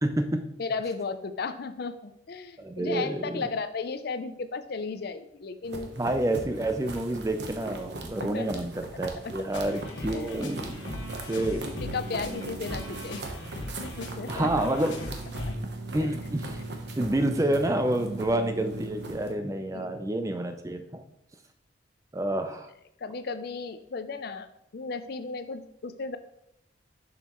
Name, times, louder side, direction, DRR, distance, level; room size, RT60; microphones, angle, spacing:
voice 1, 0.0-0.4 2.6-3.5 6.0-10.8 11.3-11.6 14.3-15.0 15.9-16.6 17.0-21.0 22.1-22.7, right 1 dB, 15° right, 7 dB, 0.5 m, -28 dB
voice 2, 0.6-5.9 8.3-8.7 9.2-9.3 10.0-10.4 11.7-13.2 13.8-14.7 15.4-15.5 16.0-16.1 19.7-20.1 23.0-24.5 24.7-26.2, left 4 dB, 55° left, 11 dB, 0.5 m, -35 dB
sound 1, 5.6-19.3, right 2 dB, 60° right, 0.9 m, -39 dB
sound 2, 9.5-15.6, left 2 dB, 75° left, 1.1 m, -39 dB
6.9 x 6.4 x 3.0 m, 0.78 s
head